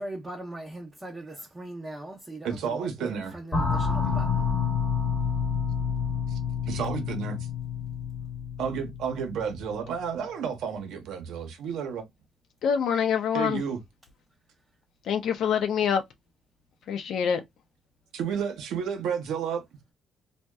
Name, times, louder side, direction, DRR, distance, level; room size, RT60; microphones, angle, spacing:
voice 1, 0.0-4.5, right 1 dB, 15° right, 0.6 m, -40 dB
voice 2, 2.4-3.4 4.0-4.2 6.3-6.4 6.7-7.4 8.6-12.0 13.3-13.8 18.1-19.6, right 7 dB, 80° right, 0.6 m, -31 dB
sound 1, 3.5-9.8, left 6 dB, 10° left, 0.9 m, -29 dB
voice 3, 12.6-13.6 15.1-16.0 16.9-17.4, left 7 dB, 65° left, 0.4 m, -25 dB
2.7 x 2.1 x 2.2 m
cardioid pair, 140°, 0 cm